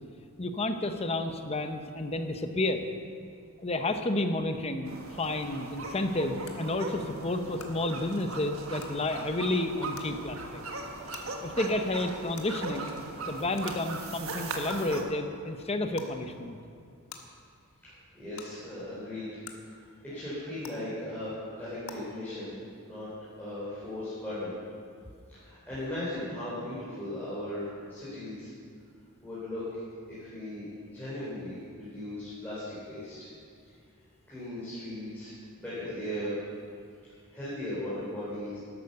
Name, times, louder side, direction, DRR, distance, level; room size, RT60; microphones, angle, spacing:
voice 1, 0.4-2.8 3.6-10.6 11.4-12.9 13.3-16.6, left 2 dB, 30° left, 7 dB, 0.8 m, -31 dB
sound 1, 4.9-15.0, right 3 dB, 75° right, 1.5 m, -39 dB
sound 2, 5.2-5.3 6.4-6.5 7.6-7.7 8.8-8.9 9.9-10.1 11.1-11.2 12.3-12.4 13.6-13.7 14.7-14.8 15.9-16.1 17.1-17.2 18.4-18.5 19.4-19.5 20.6-20.7 21.8-21.9, left 7 dB, 75° left, 1.5 m, -44 dB
voice 2, 17.8-19.4 19.8-22.6 22.8-23.1 23.4-24.5 25.3-28.5 29.2-29.8 30.1-33.3 34.3-35.3 35.6-36.4 37.3-38.6, left 1 dB, 10° left, -11 dB, 4.0 m, -37 dB
12.0 x 11.5 x 6.8 m, 2.3 s
head